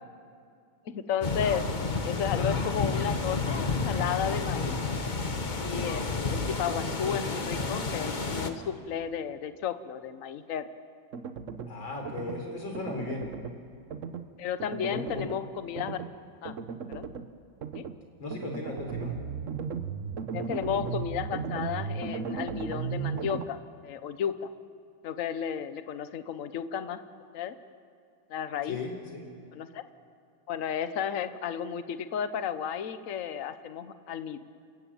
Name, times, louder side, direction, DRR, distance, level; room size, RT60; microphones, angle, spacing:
voice 1, 0.8-1.6 2.0-4.7 5.6-10.7 14.4-16.0 16.4-16.6 16.9-17.1 17.7-17.9 20.3-24.5 25.0-27.0 27.3-27.6 28.3-28.8 29.5-29.8 30.5-34.4, left 8 dB, 50° left, 11 dB, 1.2 m, -33 dB
sound 1, 1.2-8.5, left 4 dB, 30° left, 1.1 m, -30 dB
sound 2, 11.1-11.7 12.1-12.4 12.7-13.6 13.9-14.3 14.6-15.4 15.8-16.1 16.5-17.3 17.6-18.0 18.3-23.4, right 6 dB, 50° right, 1.1 m, -36 dB
voice 2, 11.7-13.3 14.9-15.3 18.2-19.2 28.7-29.3, left 3 dB, 80° left, 2 dB, 4.7 m, -36 dB
29.0 x 15.0 x 8.9 m, 2.4 s
omnidirectional pair, 2.1 m